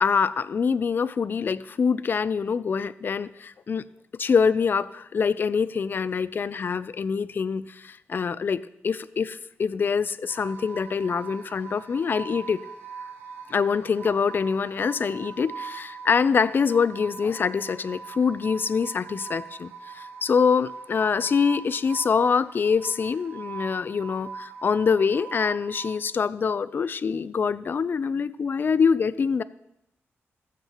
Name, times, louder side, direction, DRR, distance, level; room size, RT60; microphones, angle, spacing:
voice 1, 0.0-3.8 4.2-12.6 13.5-29.4, left 6 dB, 45° left, 15 dB, 0.4 m, -25 dB
sound 1, 10.3-25.9, right 5 dB, 70° right, 3.6 m, -41 dB
19.0 x 7.5 x 3.0 m, 0.87 s
wide cardioid pair, 110°, 5 cm